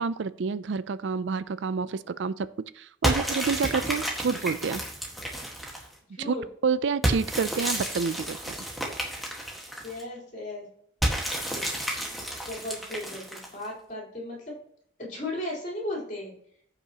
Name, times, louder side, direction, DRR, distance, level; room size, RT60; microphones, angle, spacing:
voice 1, 0.0-2.5 2.7-4.8 6.2-6.4 6.6-8.5, right 5 dB, 65° right, 16 dB, 0.4 m, -28 dB
sound 1, 3.0-5.9 7.0-10.0 11.0-13.7, equal, ahead, 1.6 m, -31 dB
voice 2, 6.1-6.4 9.8-10.7 12.5-14.6 15.0-16.3, left 1 dB, 40° left, -3 dB, 3.8 m, -35 dB
15.0 x 5.9 x 2.9 m, 0.66 s
head